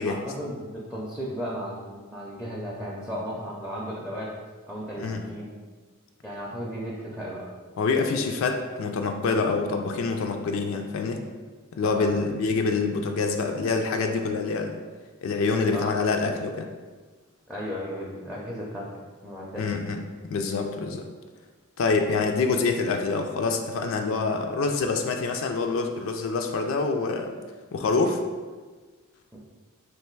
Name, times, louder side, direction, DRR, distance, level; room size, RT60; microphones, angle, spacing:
voice 1, 0.0-4.3 4.7-5.5 6.2-7.4 11.8-12.1 15.7-15.9 17.5-18.9 19.2-19.6 29.3-29.4, equal, 5° right, -5 dB, 0.5 m, -35 dB
voice 2, 7.8-11.2 11.8-14.8 15.2-16.7 19.6-20.0 20.3-21.1 21.8-27.4 27.7-28.2, left 4 dB, 65° left, 4 dB, 0.4 m, -26 dB
3.3 x 2.6 x 4.5 m, 1.4 s
head